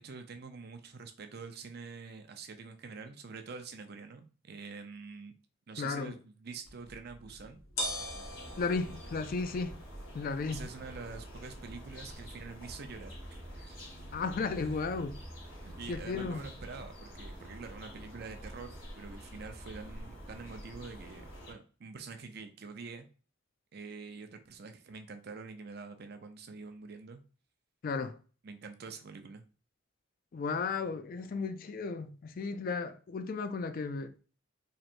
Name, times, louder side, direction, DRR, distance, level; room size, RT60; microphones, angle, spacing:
voice 1, 0.0-5.3 5.7-7.6 10.5-13.1 13.5-13.8 15.6-23.1 23.7-27.2 28.4-29.4, right 4 dB, 50° right, 0.5 m, -46 dB
voice 2, 5.8-6.1 8.6-9.8 10.1-10.6 14.1-15.2 15.9-16.4 27.8-28.2 30.3-34.1, left 4 dB, 45° left, 0.3 m, -34 dB
sound 1, 6.6-16.7, left 1 dB, 85° left, 1.1 m, -46 dB
sound 2, 7.8-21.5, equal, 65° left, 2.0 m, -47 dB
4.3 x 3.2 x 2.5 m
head